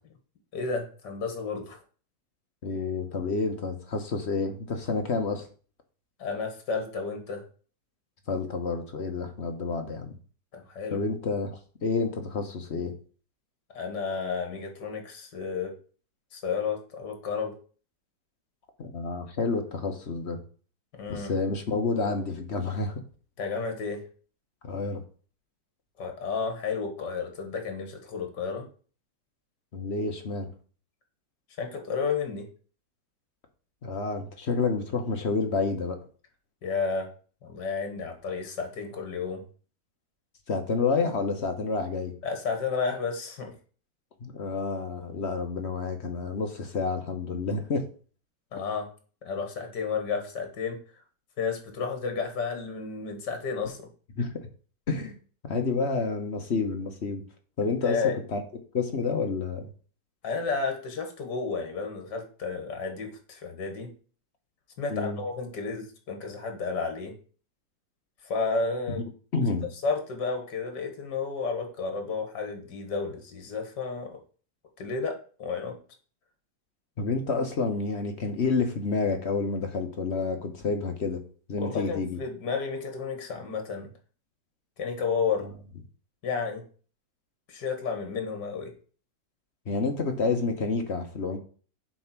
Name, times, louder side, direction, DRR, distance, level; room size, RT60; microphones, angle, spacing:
voice 1, 0.5-1.8 6.2-7.4 10.5-11.0 13.7-15.7 16.3-17.5 21.0-21.3 23.4-24.0 26.0-28.7 31.6-32.5 36.6-37.1 37.4-39.4 42.2-43.5 48.5-48.9 49.2-50.8 51.4-53.9 57.8-58.2 60.2-63.9 64.8-67.1 68.2-69.1 69.8-74.1 74.8-75.8 81.6-83.9 84.8-85.5 86.2-86.6 87.5-88.7, left 5 dB, 70° left, 4 dB, 2.2 m, -32 dB
voice 2, 2.6-5.4 8.3-10.2 10.9-11.5 11.8-12.9 18.8-20.4 21.1-23.0 24.6-25.0 29.7-30.5 33.8-36.0 40.5-42.1 44.2-47.8 54.1-54.5 54.9-55.2 55.4-57.2 57.6-58.0 58.3-58.4 58.7-59.7 64.9-65.2 68.9-69.0 69.3-69.7 77.0-81.2 81.5-82.2 89.7-91.4, left 4 dB, 45° left, 5 dB, 1.1 m, -29 dB
7.7 x 3.5 x 5.9 m, 0.40 s
omnidirectional pair, 1.9 m